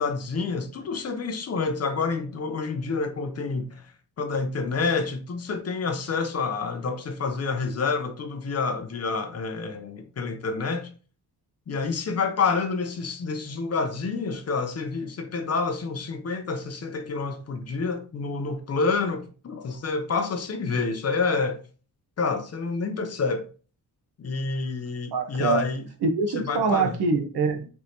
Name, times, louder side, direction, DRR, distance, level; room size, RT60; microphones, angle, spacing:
voice 1, 0.0-3.8 4.2-10.9 11.7-21.6 22.2-23.5 24.2-25.8 26.4-26.9, left 4 dB, 40° left, 0.6 m, -28 dB
voice 2, 25.1-25.6 26.0-27.7, right 4 dB, 75° right, 0.9 m, -24 dB
4.5 x 3.2 x 2.7 m
wide cardioid pair, 175°, 39 cm